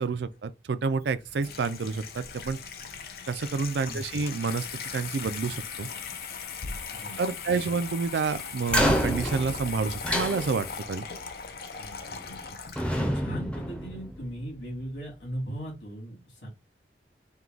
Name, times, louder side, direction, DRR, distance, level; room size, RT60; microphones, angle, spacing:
voice 1, 0.0-2.6 3.3-4.6 4.9-5.9 7.2-11.1, right 4 dB, 75° right, 0.4 m, -29 dB
Water tap faucet / Sink (filling or washing), 0.9-13.1, left 6 dB, 55° left, 0.5 m, -39 dB
voice 2, 3.9-4.2 6.9-7.3 11.7-12.6 12.9-16.5, right 1 dB, 80° left, 2.6 m, -39 dB
sound 1, 8.7-11.0 12.1-12.4 12.8-14.5, equal, 5° left, 0.6 m, -28 dB
4.5 x 2.3 x 3.8 m
head